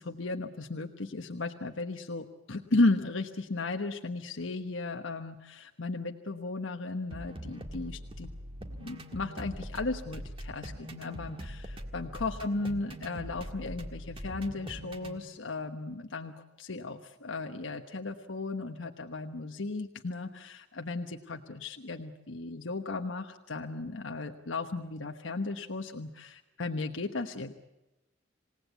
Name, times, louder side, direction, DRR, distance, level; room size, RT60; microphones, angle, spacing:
voice 1, 0.0-8.3 8.8-27.5, left 2 dB, 80° left, 5 dB, 1.2 m, -35 dB
sound 1, 7.1-15.2, equal, 30° right, 1.8 m, -42 dB
27.5 x 18.0 x 8.2 m, 0.97 s
head